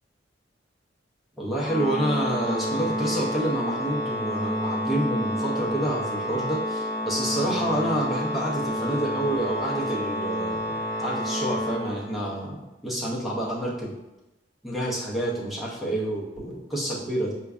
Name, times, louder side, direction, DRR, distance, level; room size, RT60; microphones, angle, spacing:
voice 1, 1.4-13.9 14.6-17.4, right 1 dB, ahead, -5 dB, 0.6 m, -28 dB
Organ, 1.6-12.5, equal, 50° right, 0.7 m, -29 dB
4.6 x 2.2 x 2.4 m, 0.97 s
head